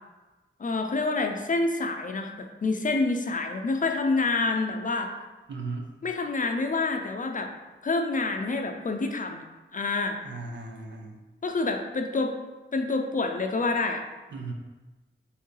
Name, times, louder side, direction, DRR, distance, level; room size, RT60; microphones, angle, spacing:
voice 1, 0.6-2.3 2.6-5.1 6.0-7.5 7.8-9.4 9.7-10.2 11.4-12.4 12.7-14.0, left 3 dB, 45° left, 4 dB, 0.5 m, -27 dB
voice 2, 5.5-5.9 10.2-11.2 14.3-14.5, right 3 dB, 70° right, 0 dB, 0.6 m, -36 dB
4.4 x 3.4 x 3.2 m, 1.2 s
wide cardioid pair, 105°, 20 cm